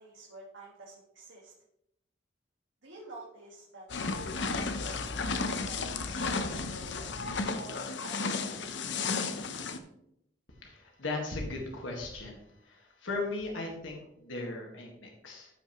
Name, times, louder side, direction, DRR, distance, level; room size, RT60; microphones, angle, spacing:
voice 1, 0.0-1.5 2.8-5.4 5.6-7.1 7.6-9.3, right 2 dB, 80° right, -3 dB, 1.7 m, -50 dB
sound 1, 3.9-9.8, left 4 dB, 65° left, 0.7 m, -33 dB
voice 2, 10.6-12.4 13.0-15.5, left 2 dB, 90° left, 0 dB, 1.7 m, -37 dB
13.5 x 5.4 x 3.0 m, 0.78 s
head